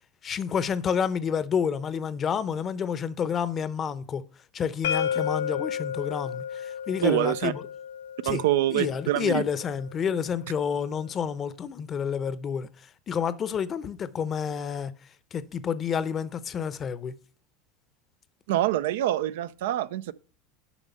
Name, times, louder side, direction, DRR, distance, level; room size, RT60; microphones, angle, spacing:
voice 1, 0.2-4.2 4.5-7.6 8.2-8.4 8.7-12.7 13.1-14.9 15.3-17.1, left 7 dB, 35° left, 0.7 m, -29 dB
sound 1, 4.8-10.6, left 8 dB, 75° left, 0.3 m, -33 dB
voice 2, 7.0-7.5 8.2-9.4 18.5-20.1, right 13 dB, 75° right, 0.4 m, -25 dB
7.1 x 5.3 x 5.5 m
hypercardioid pair, 95°, 0 cm